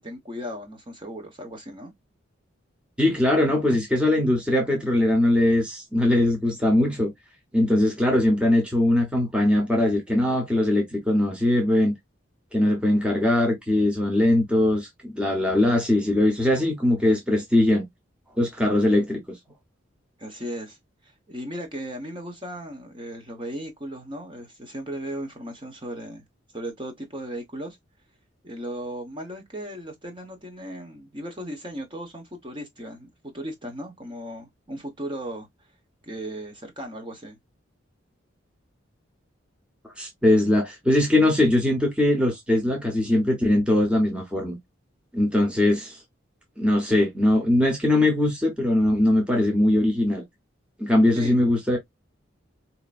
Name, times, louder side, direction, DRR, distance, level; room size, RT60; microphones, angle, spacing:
voice 1, 0.0-1.9 20.2-20.8 21.0-26.2 26.5-27.8 28.4-35.5 36.1-37.4 51.1-51.4, equal, 25° right, 1.1 m, -36 dB
voice 2, 3.0-7.1 7.5-11.9 12.5-17.9 18.4-19.4 40.0-44.6 45.1-46.0 46.6-50.2 50.8-51.8, left 1 dB, 5° right, 1.0 m, -21 dB
4.5 x 2.9 x 2.4 m
head